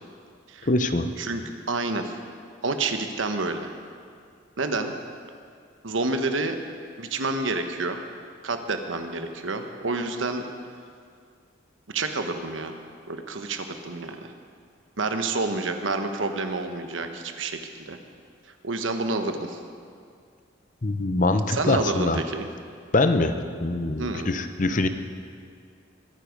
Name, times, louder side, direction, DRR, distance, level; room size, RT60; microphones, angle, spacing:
voice 1, 0.6-1.1 20.8-22.2 22.9-24.9, left 2 dB, 40° left, 9 dB, 0.7 m, -24 dB
voice 2, 1.7-2.2 2.6-3.7 4.6-4.9 5.8-6.6 7.0-8.0 8.4-10.4 11.9-12.7 13.1-14.3 15.0-18.0 18.6-19.6 21.5-22.5 24.0-24.3, right 3 dB, 85° right, 6 dB, 1.2 m, -28 dB
22.5 x 9.6 x 5.3 m, 2.2 s
head